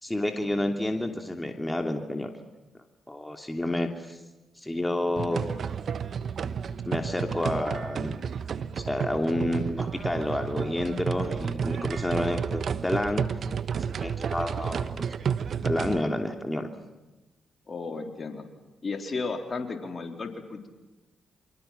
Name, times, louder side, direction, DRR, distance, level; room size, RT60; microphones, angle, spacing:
voice 1, 0.0-2.3 3.1-4.2 4.6-5.6 6.8-8.2 8.8-13.3 14.0-15.1 15.6-16.7, left 1 dB, 15° left, 4 dB, 2.9 m, -29 dB
sound 1, 5.2-16.0, right 7 dB, 60° right, 1.1 m, -31 dB
voice 2, 17.7-18.5 18.8-20.7, left 4 dB, 45° left, 4 dB, 3.9 m, -34 dB
29.0 x 24.5 x 5.9 m, 1.1 s
supercardioid pair, 45°, 0 cm